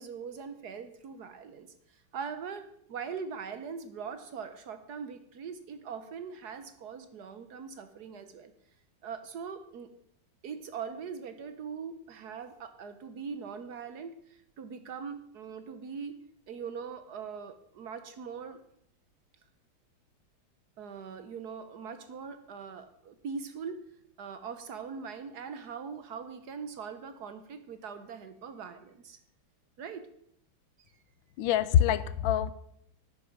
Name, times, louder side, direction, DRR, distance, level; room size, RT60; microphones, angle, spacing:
voice 1, 0.0-8.5 9.0-9.9 10.4-16.2 16.5-18.6 20.8-23.8 24.2-29.2 29.8-30.1, right 6 dB, 60° right, 10 dB, 1.3 m, -41 dB
voice 2, 31.4-32.5, left 10 dB, 75° left, 15 dB, 1.4 m, -25 dB
10.5 x 8.8 x 6.0 m, 0.72 s
omnidirectional pair, 2.2 m